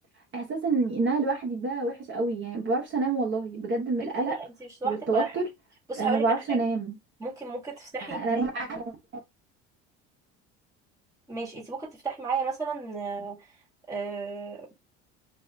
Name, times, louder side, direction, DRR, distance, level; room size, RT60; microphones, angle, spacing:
voice 1, 0.3-4.3 4.8-5.5 6.0-7.0 8.1-8.9, right 3 dB, 40° right, 1.1 m, -28 dB
voice 2, 4.2-5.3 5.9-6.6 7.2-8.8 11.3-13.4 13.9-14.7, right 4 dB, 10° right, 1.7 m, -33 dB
2.7 x 2.5 x 3.3 m
supercardioid pair, 105°, 29 cm